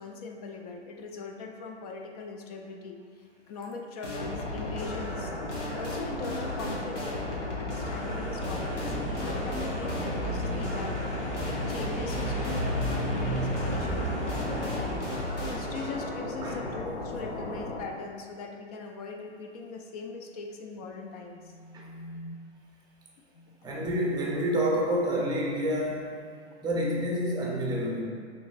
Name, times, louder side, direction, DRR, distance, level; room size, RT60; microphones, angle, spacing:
voice 1, 0.0-3.0 3.5-5.3 5.7-10.9 11.4-15.0 15.5-22.4 23.3-23.6, left 4 dB, 35° left, 3 dB, 0.4 m, -41 dB
sound 1, 4.0-16.1, left 1 dB, 85° left, 1.2 m, -38 dB
sound 2, 4.1-17.8, left 2 dB, 60° left, 0.8 m, -36 dB
sound 3, 7.7-15.0, equal, 20° left, 1.0 m, -33 dB
voice 2, 23.6-26.1 26.6-28.0, equal, 10° right, -3 dB, 0.7 m, -28 dB
6.0 x 3.2 x 2.5 m, 2.2 s
hypercardioid pair, 120°, 35 cm